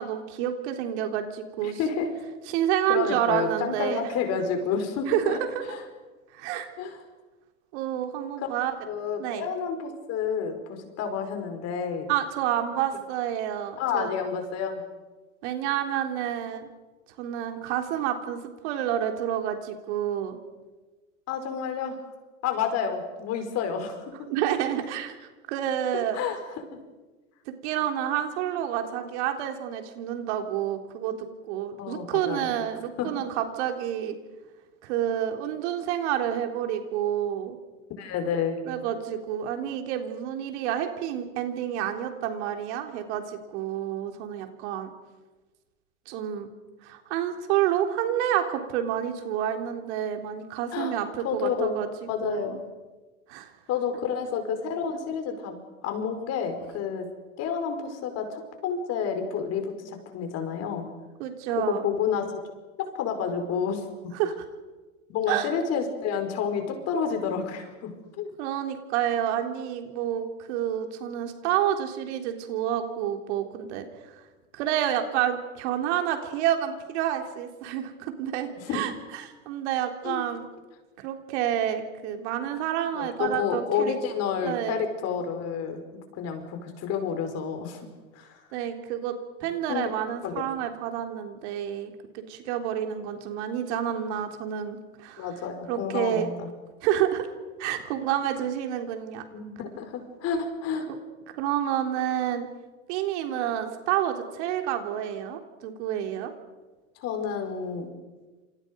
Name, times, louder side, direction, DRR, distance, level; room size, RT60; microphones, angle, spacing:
voice 1, 0.0-1.8 2.5-4.1 5.1-5.6 6.3-6.7 7.7-8.7 9.2-9.5 12.1-14.1 15.4-16.7 17.2-20.4 24.3-26.2 27.5-34.2 34.8-37.6 38.7-44.9 46.1-46.5 46.8-51.9 52.2-52.6 53.3-53.5 61.2-61.8 64.1-64.3 65.3-65.5 68.4-74.2 74.5-80.5 81.0-84.0 84.4-84.9 88.5-89.2 89.4-95.3 95.7-96.3 96.8-97.3 97.6-99.2 101.3-102.5 102.9-106.3, right 10 dB, 55° right, 5 dB, 3.6 m, -29 dB
voice 2, 1.6-2.1 2.9-5.4 5.7-5.8 6.8-7.0 8.4-8.5 8.9-12.1 13.8-14.8 21.3-22.0 22.4-24.0 26.1-26.4 31.8-32.5 33.0-33.2 38.0-38.6 50.7-50.9 51.2-51.8 52.1-52.6 53.7-57.1 57.4-60.9 61.6-62.4 62.8-64.1 65.1-68.3 78.6-78.8 80.0-80.2 82.9-85.8 86.1-87.8 88.1-88.4 89.7-89.9 90.2-90.5 95.2-96.5 99.3-100.9 107.0-107.9, left 6 dB, 40° left, 6 dB, 5.1 m, -30 dB
28.5 x 27.5 x 5.3 m, 1.3 s
hypercardioid pair, 120°, 41 cm